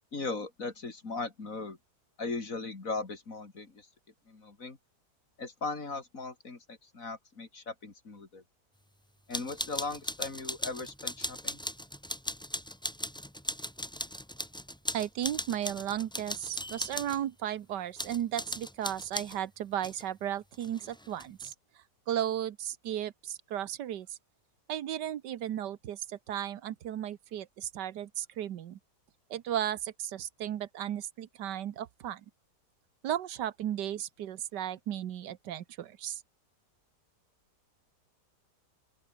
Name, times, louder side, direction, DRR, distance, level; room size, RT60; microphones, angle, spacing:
voice 1, 0.1-1.8 2.2-3.9 4.3-4.8 5.4-8.4 9.3-11.6, left 3 dB, 50° left, 3.3 m, -38 dB
sound 1, 9.3-17.2 18.0-19.4 19.8-20.0 20.5-21.5, equal, 5° left, 1.2 m, -38 dB
voice 2, 14.9-21.5 22.1-24.2 24.7-28.8 29.3-32.2 33.0-36.2, right 11 dB, 80° right, 1.6 m, -35 dB
open air
omnidirectional pair, 1.8 m